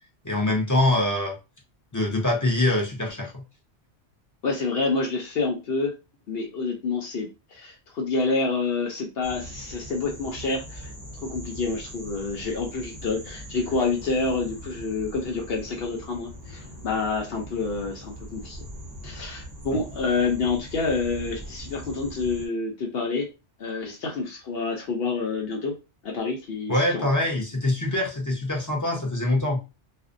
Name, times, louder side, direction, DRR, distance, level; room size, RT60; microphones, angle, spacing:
voice 1, 0.2-1.4 1.9-3.4 26.7-29.6, left 1 dB, 25° left, -1 dB, 0.4 m, -24 dB
voice 2, 4.4-5.9 6.3-10.9 11.3-18.6 19.0-23.3 23.6-25.8 26.0-27.1, left 4 dB, 65° left, 0 dB, 0.8 m, -28 dB
sound 1, 9.2-22.5, equal, 25° right, 0.5 m, -41 dB
2.5 x 2.1 x 2.5 m, 0.28 s
omnidirectional pair, 1.2 m